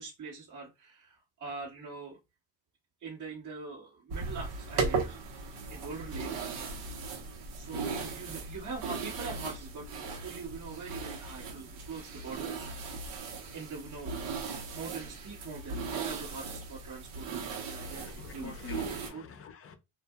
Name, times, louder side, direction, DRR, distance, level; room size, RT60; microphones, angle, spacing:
voice 1, 0.0-2.2 3.0-6.3 7.5-13.1 13.5-14.1 14.7-18.6 18.9-19.3, right 4 dB, 45° right, 1.3 m, -43 dB
sound 1, 4.1-19.1, right 4 dB, 70° right, 1.1 m, -37 dB
voice 2, 17.8-19.8, left 6 dB, 35° left, 0.7 m, -46 dB
2.6 x 2.5 x 2.2 m
supercardioid pair, 80°, 41 cm